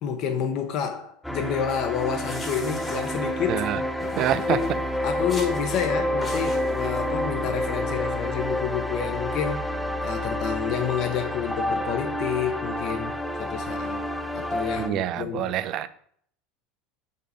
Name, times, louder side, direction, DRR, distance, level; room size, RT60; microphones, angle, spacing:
voice 1, 0.0-3.7 4.0-4.1 4.5-4.8 5.0-9.6 10.0-13.1 13.4-14.0 14.3-15.5, left 8 dB, 55° left, 0.9 m, -29 dB
sound 1, 1.2-14.9, equal, 5° left, 0.6 m, -29 dB
sound 2, 2.0-3.6 4.0-4.8 5.3-5.9 6.2-7.0, left 3 dB, 20° left, 1.3 m, -40 dB
voice 2, 3.5-3.8 4.2-4.6 14.8-15.9, right 12 dB, 50° right, 0.4 m, -26 dB
5.4 x 5.1 x 4.1 m
supercardioid pair, 120°, 0 cm